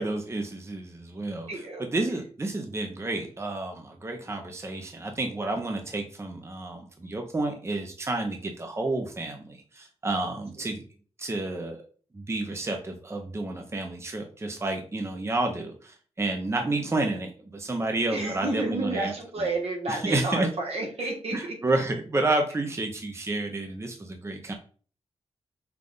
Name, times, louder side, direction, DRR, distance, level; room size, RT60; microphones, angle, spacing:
voice 1, 0.0-10.8 11.2-11.8 12.1-19.1 19.4-19.5 19.9-20.5 21.3-24.5, right 2 dB, 25° right, 4 dB, 0.8 m, -30 dB
voice 2, 1.5-1.8 18.1-21.6, right 2 dB, 65° right, 1 dB, 1.4 m, -30 dB
5.8 x 2.4 x 3.8 m, 0.41 s
cardioid pair, 70°, 11 cm